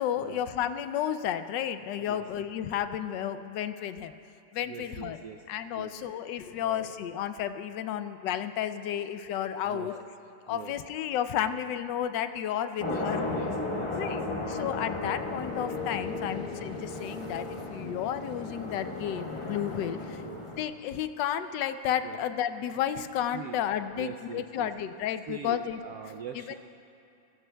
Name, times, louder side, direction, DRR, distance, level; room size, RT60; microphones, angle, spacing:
voice 1, 0.0-4.1 4.5-5.2 5.5-10.0 10.5-13.5 14.0-14.2 14.5-20.2 20.6-25.8 26.5-26.6, left 10 dB, 80° left, 10 dB, 1.2 m, -32 dB
voice 2, 4.6-5.4 5.7-5.9 6.6-6.9 9.6-9.9 10.5-10.7 12.8-14.5 16.2-16.4 20.2-20.5 22.0-22.2 23.3-23.6 23.9-24.7 25.3-26.5, right 7 dB, 70° right, 3 dB, 0.9 m, -43 dB
sound 1, 12.8-20.6, left 3 dB, 25° left, 0.8 m, -35 dB
22.0 x 15.5 x 2.2 m, 2.6 s
omnidirectional pair, 1.9 m